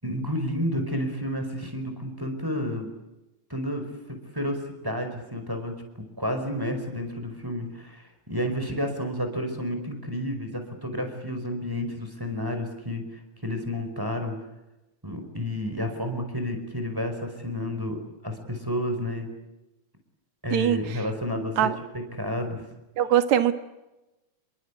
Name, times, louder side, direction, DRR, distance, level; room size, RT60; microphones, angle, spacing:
voice 1, 0.0-2.9 3.5-5.7 6.2-13.0 13.4-14.4 15.0-19.3 20.4-21.7 22.2-22.6, equal, 5° right, 6 dB, 4.9 m, -31 dB
voice 2, 20.5-21.0 21.6-21.8 23.0-23.5, right 11 dB, 60° right, 10 dB, 2.5 m, -22 dB
28.5 x 23.5 x 8.5 m, 1.0 s
omnidirectional pair, 4.1 m